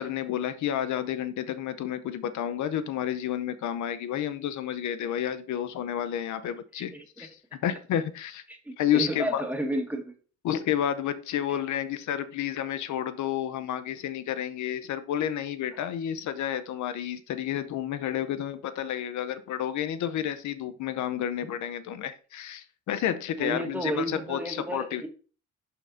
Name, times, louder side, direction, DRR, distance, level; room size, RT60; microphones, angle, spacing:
voice 1, 0.0-7.3 7.6-8.4 8.8-9.4 10.4-25.1, left 10 dB, 75° left, 0.7 m, -30 dB
voice 2, 6.8-7.3 8.5-10.1 11.5-11.6 15.7-15.8 23.4-25.1, right 1 dB, 5° right, 1.8 m, -32 dB
11.0 x 4.2 x 2.6 m
cardioid pair, 90°, 30 cm